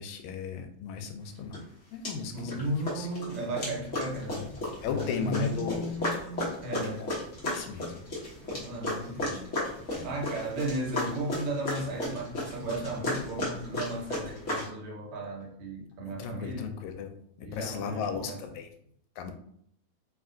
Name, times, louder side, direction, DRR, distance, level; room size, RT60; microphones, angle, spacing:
voice 1, 0.0-1.7 1.9-2.7 3.0-3.1 4.8-5.9 7.0-7.2 7.5-8.0 9.9-10.1 16.1-17.1 17.4-18.7 19.2-19.3, left 6 dB, 85° left, 6 dB, 1.9 m, -36 dB
sound 1, 1.5-1.6 2.0-2.6 2.9-14.7, left 1 dB, 65° left, 0.7 m, -34 dB
voice 2, 2.3-4.5 4.9-7.1 8.5-9.5 10.0-16.7 17.4-18.4, right 1 dB, 75° right, -2 dB, 2.2 m, -35 dB
4.6 x 2.4 x 3.7 m, 0.67 s
omnidirectional pair, 3.3 m